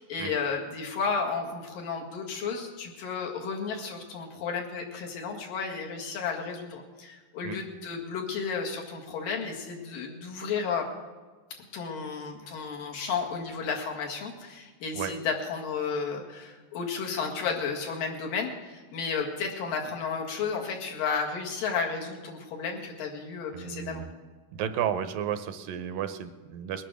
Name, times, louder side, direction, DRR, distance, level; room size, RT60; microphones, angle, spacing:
voice 1, 0.0-10.9 11.6-24.1, left 5 dB, 80° left, 0 dB, 3.5 m, -33 dB
voice 2, 23.5-24.1 24.5-26.9, right 9 dB, 80° right, 10 dB, 2.4 m, -33 dB
21.0 x 9.1 x 6.3 m, 1.4 s
omnidirectional pair, 3.9 m